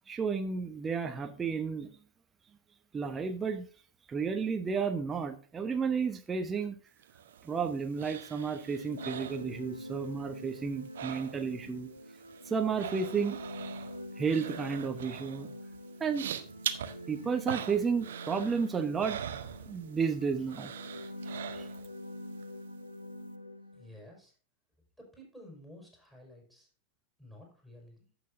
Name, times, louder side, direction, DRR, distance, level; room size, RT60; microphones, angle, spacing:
voice 1, 0.1-1.9 2.9-3.7 4.1-6.7 7.4-11.9 12.4-13.4 14.2-15.5 16.0-16.3 17.1-19.2 19.7-20.7 21.5-21.7, right 5 dB, 20° right, 6 dB, 1.0 m, -32 dB
sound 1, 7.0-10.1 10.3-11.7 12.0-20.1 20.5-22.0 22.4-22.5, right 9 dB, 60° right, 0.9 m, -42 dB
sound 2, 8.4-24.1, equal, 90° left, 1.2 m, -45 dB
voice 2, 23.7-24.3 25.0-26.7 27.2-28.1, left 1 dB, 5° left, -1 dB, 5.0 m, -52 dB
15.0 x 6.2 x 2.6 m, 0.41 s
figure-of-eight pair, 90°, 0 cm